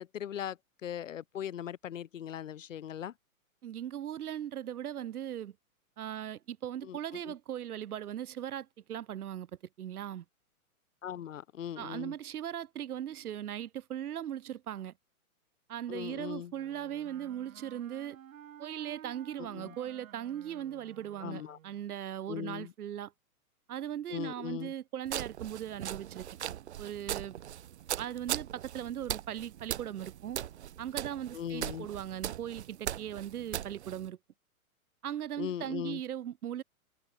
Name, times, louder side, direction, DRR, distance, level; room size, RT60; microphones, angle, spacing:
voice 1, 0.0-3.1 6.8-7.0 7.2-7.3 11.0-12.1 15.9-16.5 19.4-19.7 21.2-21.6 22.3-22.7 24.1-24.7 31.3-31.9 35.4-36.0, left 10 dB, 60° left, 2.5 m, -39 dB
voice 2, 3.6-5.5 6.0-9.5 9.8-10.2 11.8-14.9 15.7-18.2 18.6-23.1 23.7-26.3 26.8-27.4 28.0-30.4 30.8-34.2 35.0-36.6, right 10 dB, 90° right, 1.1 m, -39 dB
Wind instrument woodwind instrument, 16.5-21.9, right 10 dB, 65° right, 2.0 m, -53 dB
sound 1, 25.1-34.1, right 11 dB, 50° right, 2.0 m, -39 dB
hypercardioid pair, 175°, 43 cm